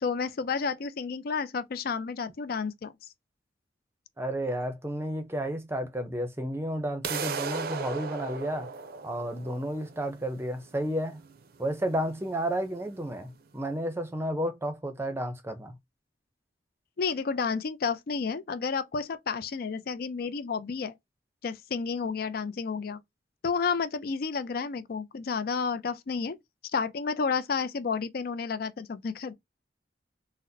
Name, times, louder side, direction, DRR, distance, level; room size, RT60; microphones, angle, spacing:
voice 1, 0.0-2.9 17.0-21.0 21.4-23.0 23.4-26.4 26.7-29.3, left 5 dB, 55° left, 0.4 m, -31 dB
voice 2, 4.2-8.7 9.0-11.2 11.6-15.8, right 1 dB, 15° right, 0.6 m, -32 dB
sound 1, 7.0-13.0, right 5 dB, 55° right, 0.5 m, -37 dB
4.0 x 2.0 x 2.6 m
head